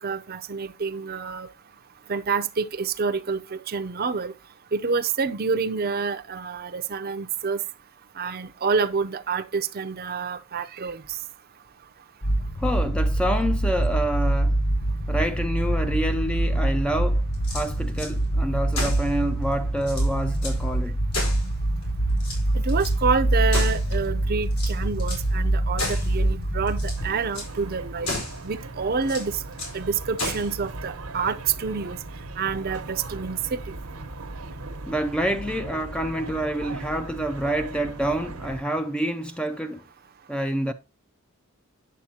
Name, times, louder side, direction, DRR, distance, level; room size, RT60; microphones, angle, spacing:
voice 1, 0.0-1.5 2.1-4.3 4.7-7.6 8.2-11.2 22.5-28.1 28.4-29.4 29.7-32.0 32.4-33.8, right 5 dB, 45° right, 0.6 m, -28 dB
sound 1, 12.2-27.1, right 1 dB, 35° left, 0.9 m, -25 dB
voice 2, 12.6-14.6 15.1-17.3 17.5-21.0 34.9-39.8 40.3-40.7, right 1 dB, 5° left, 0.4 m, -27 dB
sound 2, 17.3-18.1 18.7-19.1 19.5-19.6 19.8-20.6 21.1-21.8 22.2-23.0 23.5-24.1 24.5-25.3 25.8-26.2 26.7-27.0 27.3-27.5 28.0-28.4 29.0-29.8 30.2-30.5, left 2 dB, 80° left, 4.5 m, -33 dB
sound 3, 27.0-38.6, right 2 dB, 80° right, 1.0 m, -38 dB
8.6 x 7.3 x 2.8 m
head